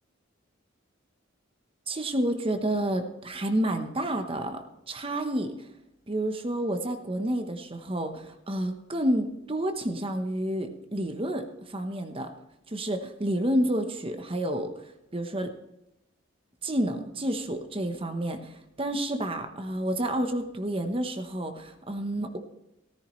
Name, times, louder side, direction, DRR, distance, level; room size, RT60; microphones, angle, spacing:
voice 1, 1.9-4.6 4.9-5.5 6.1-12.3 12.7-14.7 15.1-15.5 16.6-22.4, right 1 dB, 25° right, 6 dB, 1.0 m, -29 dB
14.0 x 14.0 x 3.2 m, 0.90 s
head